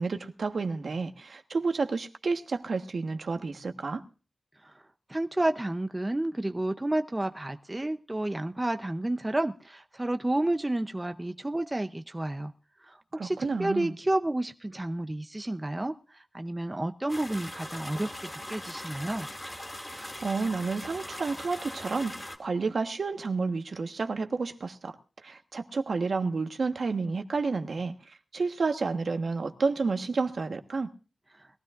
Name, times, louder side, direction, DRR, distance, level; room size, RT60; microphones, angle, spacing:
voice 1, 0.0-4.0 13.1-14.0 19.9-25.0 25.2-30.9, right 4 dB, 70° right, 6 dB, 1.3 m, -30 dB
voice 2, 5.1-12.5 12.8-18.1 18.5-19.3, right 1 dB, 20° right, 8 dB, 0.7 m, -30 dB
sound 1, 17.1-22.4, left 1 dB, 20° left, 2.6 m, -40 dB
21.5 x 15.5 x 2.5 m, 0.35 s
wide cardioid pair, 95°, 0 cm